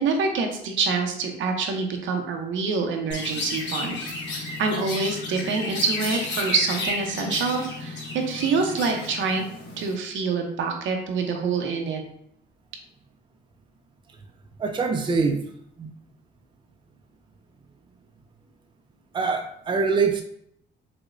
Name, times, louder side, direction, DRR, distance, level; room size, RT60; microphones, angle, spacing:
voice 1, 0.0-4.0 4.6-9.4 9.8-12.0, right 4 dB, 75° right, 4 dB, 0.7 m, -26 dB
Chirp tweet, 3.1-9.9, left 2 dB, 65° left, 1.1 m, -32 dB
voice 2, 14.6-15.4 15.8-15.9 19.1-20.2, right 4 dB, 25° right, 4 dB, 0.4 m, -24 dB
4.9 x 2.2 x 2.5 m, 0.70 s
cardioid pair, 90°, 20 cm